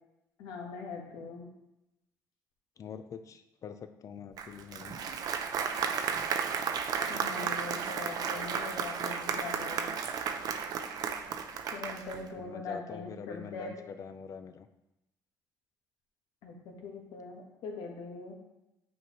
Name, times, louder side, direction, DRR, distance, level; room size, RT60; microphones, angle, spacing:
voice 1, 0.4-1.5 7.1-9.9 11.7-13.7 16.4-18.3, left 4 dB, 85° left, 1 dB, 1.5 m, -42 dB
voice 2, 2.8-5.0 12.1-14.7, left 7 dB, 45° left, 9 dB, 0.5 m, -45 dB
Applause, 4.4-12.3, right 6 dB, 60° right, 0.6 m, -33 dB
9.2 x 4.7 x 3.1 m, 0.90 s
cardioid pair, 110°, 7 cm